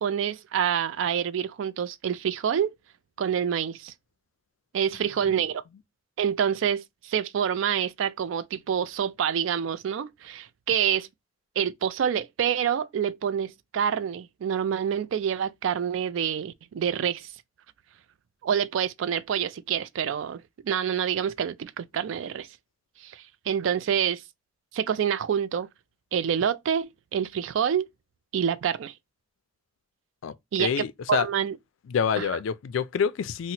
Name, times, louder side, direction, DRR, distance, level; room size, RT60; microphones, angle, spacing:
voice 1, 0.0-2.7 3.2-3.9 4.7-5.6 6.2-11.1 11.6-17.3 18.4-22.5 23.0-24.2 24.7-25.7 26.1-27.9 28.3-28.9 30.5-30.7 31.1-31.5 32.2-32.3, right 8 dB, 75° right, 0.3 m, -27 dB
voice 2, 30.2-31.3 31.9-33.5, left 7 dB, 80° left, 0.3 m, -27 dB
2.8 x 2.0 x 4.0 m
head